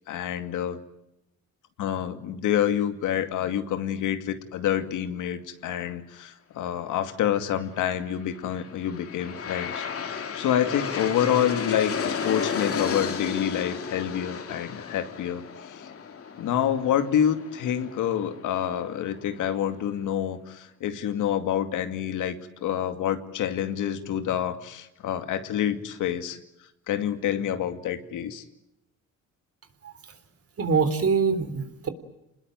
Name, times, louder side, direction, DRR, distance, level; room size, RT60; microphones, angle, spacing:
voice 1, 0.1-0.8 1.8-15.9 16.4-22.4 22.6-26.4 26.9-28.4, left 10 dB, 85° left, 8 dB, 2.4 m, -27 dB
Aircraft, 8.3-19.4, left 6 dB, 50° left, 2.8 m, -33 dB
voice 2, 30.6-31.9, right 5 dB, 50° right, 11 dB, 3.7 m, -24 dB
28.0 x 20.5 x 9.1 m, 0.88 s
cardioid pair, 90°, 30 cm